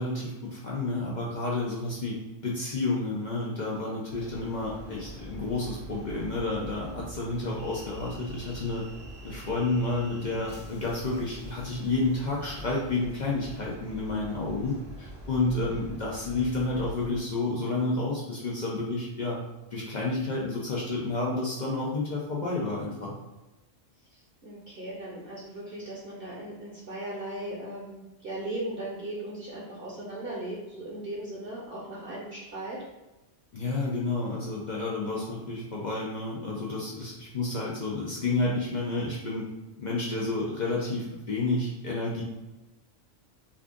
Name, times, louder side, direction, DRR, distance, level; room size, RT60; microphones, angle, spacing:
voice 1, 0.0-2.2 2.4-8.8 9.2-19.4 19.7-23.1 33.5-39.5 39.8-42.2, left 2 dB, 55° left, -4 dB, 0.5 m, -30 dB
sound 1, 4.1-17.2, equal, 5° right, 0.6 m, -44 dB
voice 2, 24.1-32.8 34.9-35.2, right 1 dB, 55° right, -4 dB, 0.8 m, -38 dB
2.5 x 2.4 x 3.5 m, 1.1 s
omnidirectional pair, 1.3 m